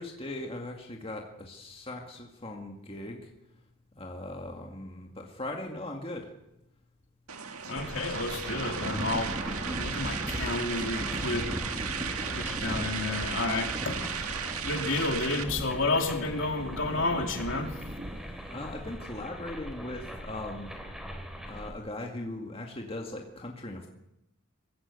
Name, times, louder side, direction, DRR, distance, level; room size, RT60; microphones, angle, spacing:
voice 1, 0.0-3.3 4.0-6.3 18.5-20.7 21.5-23.9, left 1 dB, 25° left, 2 dB, 2.0 m, -39 dB
sound 1, 7.3-15.4, right 7 dB, 90° right, 1.9 m, -36 dB
voice 2, 7.7-9.4 9.6-11.5 12.3-14.3 14.6-17.7, left 2 dB, 60° left, 4 dB, 3.1 m, -31 dB
sound 2, 7.7-21.7, equal, ahead, 3.2 m, -43 dB
Thunder / Rain, 8.5-19.0, equal, 25° right, 1.8 m, -39 dB
23.0 x 16.0 x 8.2 m, 0.87 s
head